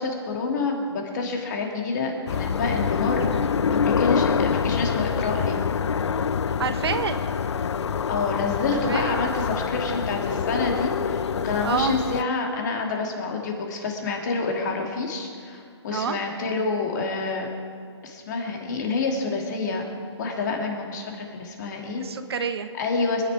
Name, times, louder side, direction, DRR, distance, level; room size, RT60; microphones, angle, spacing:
voice 1, 0.0-3.5 3.8-5.6 8.1-17.5 18.0-19.9 20.2-22.0 22.8-23.2, left 3 dB, 40° left, 1 dB, 2.5 m, -28 dB
sound 1, 2.3-12.2, left 6 dB, 70° left, 0.5 m, -26 dB
voice 2, 6.6-7.2 8.7-9.2 11.6-11.9 15.9-16.2 22.0-22.7, right 6 dB, 60° right, 8 dB, 1.2 m, -27 dB
26.0 x 10.5 x 4.8 m, 2.2 s
hypercardioid pair, 160°, 15 cm